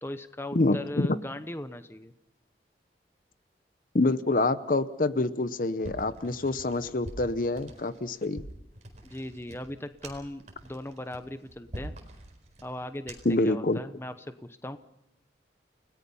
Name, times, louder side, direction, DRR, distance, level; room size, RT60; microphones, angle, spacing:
voice 1, 0.0-2.1 9.0-11.9 12.6-14.8, left 1 dB, 15° left, 10 dB, 0.8 m, -39 dB
voice 2, 0.5-1.1 3.9-8.5 13.2-13.8, left 2 dB, 50° left, 13 dB, 0.8 m, -26 dB
sound 1, 5.8-13.5, right 1 dB, 40° right, 4.5 m, -45 dB
30.0 x 19.0 x 5.5 m, 0.80 s
head